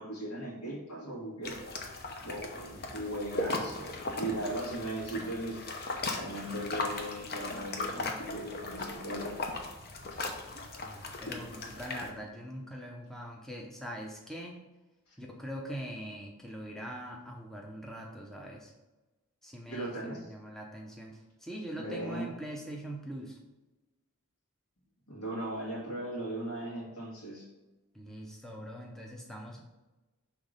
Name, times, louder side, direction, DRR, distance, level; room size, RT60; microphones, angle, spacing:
voice 1, 0.0-1.6 2.2-5.7 6.2-9.3 10.1-10.2 15.1-15.2 19.7-20.3 21.7-22.3 25.1-27.5, right 1 dB, 75° left, -4 dB, 2.2 m, -38 dB
sound 1, 1.4-12.1, left 2 dB, 45° left, 0.8 m, -38 dB
voice 2, 10.8-14.5 15.2-18.7 19.4-23.4 27.9-29.6, equal, ahead, -1 dB, 0.7 m, -42 dB
5.9 x 3.5 x 5.1 m, 1.1 s
head